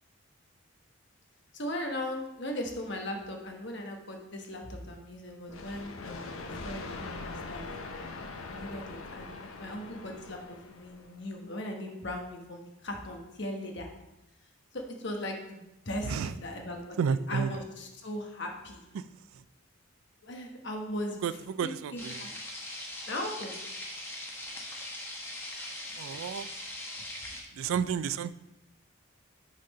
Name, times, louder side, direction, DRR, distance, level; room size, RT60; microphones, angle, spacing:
voice 1, 1.5-7.7 8.5-13.9 14.7-18.8 20.2-21.2 21.6-22.3 23.1-23.5 27.6-27.8, left 1 dB, 55° left, 2 dB, 1.1 m, -38 dB
sound 1, 5.5-11.2, left 3 dB, 90° left, 0.7 m, -42 dB
voice 2, 17.0-17.5 19.0-19.1 21.2-22.2 26.0-26.5 27.6-28.3, right 7 dB, 80° right, 15 dB, 0.3 m, -31 dB
sound 2, 22.0-27.4, left 1 dB, 10° left, 0.9 m, -41 dB
6.4 x 4.1 x 5.4 m, 0.94 s
head